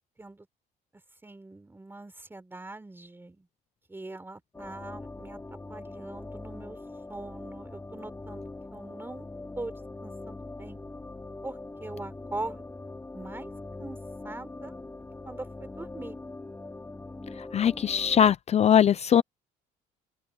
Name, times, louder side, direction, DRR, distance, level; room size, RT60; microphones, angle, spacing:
voice 1, 1.2-3.5 3.9-5.4 5.7-6.8 7.1-8.4 8.7-9.3 9.6-9.8 10.0-10.9 11.4-12.7 13.1-13.5 13.8-14.0 14.2-14.7 15.3-16.2, right 2 dB, 15° right, 4.3 m, -41 dB
sound 1, 4.5-18.3, left 2 dB, 15° left, 3.0 m, -42 dB
voice 2, 17.5-19.2, left 9 dB, 40° left, 0.6 m, -21 dB
open air
cardioid pair, 110°, 17 cm